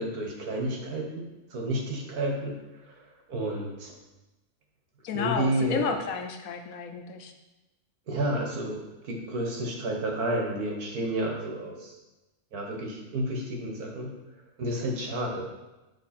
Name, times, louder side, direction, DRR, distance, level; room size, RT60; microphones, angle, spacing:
voice 1, 0.0-3.9 5.1-6.0 8.1-11.9 12.5-14.1 14.6-15.5, right 1 dB, 80° right, 0 dB, 1.7 m, -31 dB
voice 2, 5.0-7.3, left 5 dB, 70° left, 6 dB, 1.1 m, -32 dB
9.3 x 3.5 x 4.3 m, 1.1 s
omnidirectional pair, 1.6 m